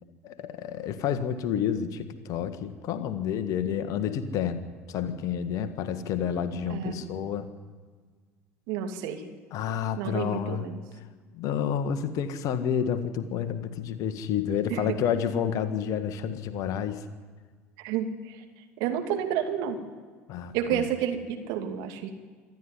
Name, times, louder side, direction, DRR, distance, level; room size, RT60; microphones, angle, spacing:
voice 1, 0.2-7.5 9.5-10.7 11.3-17.0 20.3-20.8, left 8 dB, 50° left, 9 dB, 1.7 m, -30 dB
voice 2, 6.7-7.3 8.7-9.2 10.0-10.8 14.7-14.9 17.8-18.1 18.8-19.8 20.5-22.2, right 9 dB, 60° right, 4 dB, 2.5 m, -30 dB
26.0 x 12.5 x 9.7 m, 1.5 s
figure-of-eight pair, 70°, 7 cm